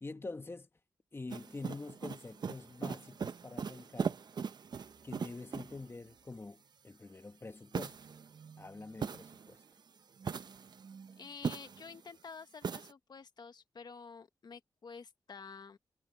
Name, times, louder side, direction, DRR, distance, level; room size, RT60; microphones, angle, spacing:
voice 1, 0.0-0.7 1.1-4.2 5.0-8.0 8.6-9.6, left 3 dB, 30° left, 1.6 m, -46 dB
sound 1, 1.3-5.9 7.7-9.7 10.2-12.0 12.6-12.9, right 6 dB, 65° right, 0.8 m, -40 dB
voice 2, 11.2-15.8, left 5 dB, 60° left, 1.5 m, -50 dB
cardioid pair, 70°, 8 cm